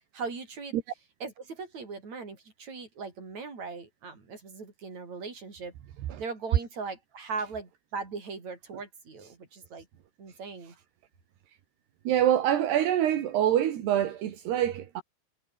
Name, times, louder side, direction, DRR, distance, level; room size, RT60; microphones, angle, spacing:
voice 1, 0.1-0.7 1.2-5.7 6.2-9.9 10.2-10.7, right 4 dB, 40° right, 7.1 m, -39 dB
voice 2, 12.1-15.0, right 11 dB, 75° right, 4.0 m, -25 dB
omnidirectional pair, 4.8 m